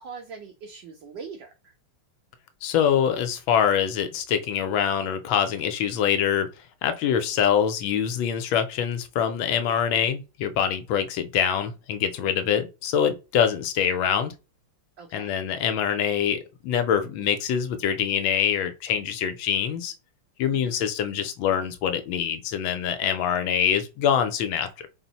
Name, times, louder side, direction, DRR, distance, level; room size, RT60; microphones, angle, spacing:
voice 1, 0.0-1.7 15.0-15.4 20.5-20.9, right 5 dB, 70° right, 1.1 m, -42 dB
voice 2, 2.6-6.5 6.8-14.3 15.1-19.9 20.4-24.9, left 8 dB, 75° left, 1.2 m, -24 dB
4.3 x 2.0 x 4.0 m
omnidirectional pair, 2.4 m